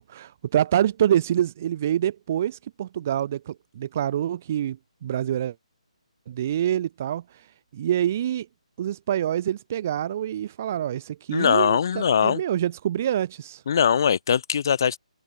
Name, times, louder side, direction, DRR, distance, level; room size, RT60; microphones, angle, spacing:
voice 1, 0.0-5.5 6.3-8.5 8.8-13.6, right 10 dB, 20° right, 0.3 m, -26 dB
voice 2, 11.3-12.4 13.7-15.0, left 7 dB, 35° left, 0.7 m, -21 dB
hypercardioid pair, 175°, 4 cm